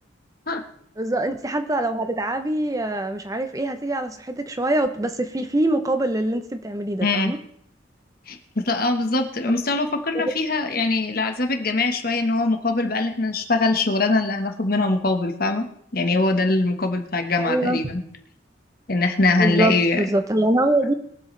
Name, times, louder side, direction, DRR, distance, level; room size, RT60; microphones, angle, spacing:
voice 1, 1.0-7.4 9.5-9.6 10.1-10.3 17.4-17.8 19.4-20.9, right 1 dB, 20° right, 8 dB, 0.7 m, -24 dB
voice 2, 7.0-7.3 8.3-15.7 15.9-18.0 18.9-20.0, left 3 dB, 50° left, 5 dB, 1.3 m, -22 dB
22.0 x 7.8 x 3.3 m, 0.71 s
head